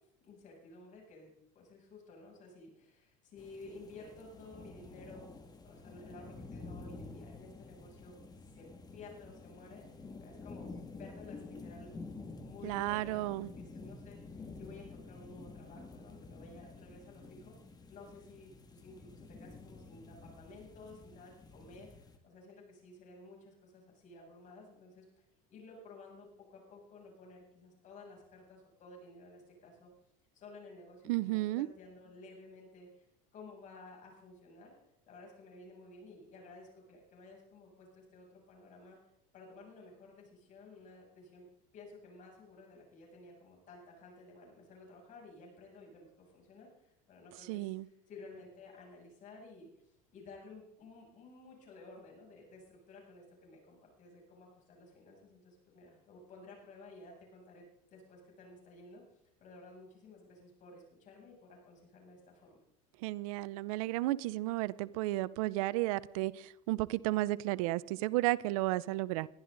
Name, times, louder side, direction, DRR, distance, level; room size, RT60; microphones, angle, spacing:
voice 1, 0.2-5.3 5.6-12.0 12.4-17.5 17.9-25.2 25.5-29.9 30.3-33.0 33.3-39.0 39.3-41.4 41.7-57.6 57.9-59.0 59.4-62.6, left 3 dB, 45° left, 0 dB, 7.6 m, -54 dB
sound 1, 3.4-22.2, left 3 dB, 20° left, 2.2 m, -50 dB
voice 2, 12.6-13.5 31.1-31.7 47.5-47.9 63.0-69.3, right 18 dB, 80° right, 19 dB, 0.6 m, -33 dB
22.0 x 13.0 x 3.9 m, 0.78 s
supercardioid pair, 110°, 18 cm